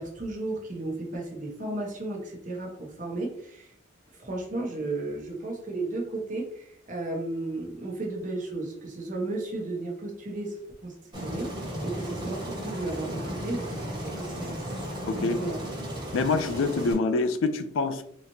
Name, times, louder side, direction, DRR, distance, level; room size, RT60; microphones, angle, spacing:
voice 1, 0.0-3.7 4.2-10.5 10.8-11.5 11.8-14.6 15.2-15.6, right 2 dB, 40° right, -1 dB, 1.0 m, -34 dB
Aircraft, 11.1-16.9, equal, 20° right, 1.3 m, -35 dB
voice 2, 15.1-15.5 16.1-18.0, left 3 dB, 80° left, 10 dB, 0.4 m, -26 dB
4.0 x 3.0 x 2.7 m, 0.69 s
head